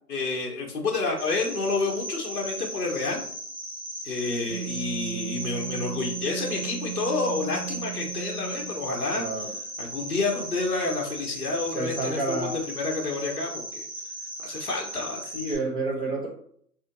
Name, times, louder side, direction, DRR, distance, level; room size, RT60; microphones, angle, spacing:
voice 1, 0.1-3.2 4.0-9.3 9.8-13.9 14.4-15.3, left 3 dB, 65° left, 0 dB, 0.9 m, -29 dB
Cricket, 1.2-15.5, right 1 dB, 15° right, 1.0 m, -37 dB
Wind instrument woodwind instrument, 4.5-8.9, right 10 dB, 40° right, 0.8 m, -36 dB
voice 2, 5.0-5.3 9.1-9.5 11.7-12.6 15.3-16.3, right 2 dB, 20° left, -7 dB, 0.8 m, -30 dB
4.1 x 2.7 x 2.6 m, 0.63 s
hypercardioid pair, 170°, 49 cm